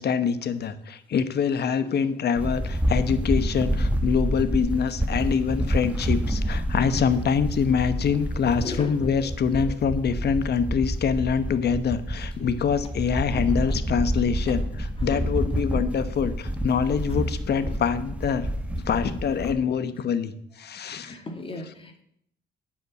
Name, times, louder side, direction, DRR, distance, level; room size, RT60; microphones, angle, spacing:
voice 1, 0.0-18.5 18.7-21.2 21.6-21.7, left 6 dB, 55° left, 13 dB, 1.0 m, -25 dB
sound 1, 2.3-19.5, equal, 5° right, 1.1 m, -28 dB
voice 2, 8.6-9.3 9.6-9.8 13.7-13.8 14.5-14.6 21.0-22.0, left 2 dB, 25° left, 5 dB, 2.1 m, -38 dB
9.8 x 5.6 x 8.0 m, 0.71 s
cardioid pair, 90°, 20 cm